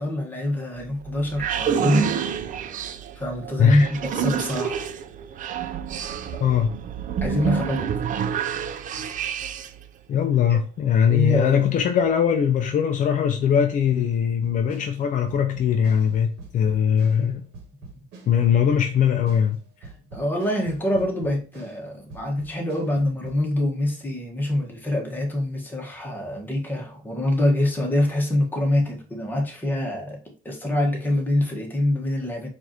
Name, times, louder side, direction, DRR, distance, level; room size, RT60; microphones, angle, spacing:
voice 1, 0.0-2.1 3.1-4.8 7.2-7.9 11.1-11.6 17.9-18.0 19.8-30.2 30.4-32.5, left 1 dB, 10° left, 1.2 m, -25 dB
sound 1, 0.8-9.8, right 8 dB, 50° right, 0.4 m, -28 dB
voice 2, 3.6-3.9 6.4-6.7 10.1-17.5 18.3-19.6, left 8 dB, 50° left, 0.5 m, -21 dB
sound 2, 14.4-17.3 17.5-21.8 22.1-23.4, right 3 dB, 85° right, 1.0 m, -44 dB
4.6 x 2.5 x 2.7 m
cardioid pair, 110°, 17 cm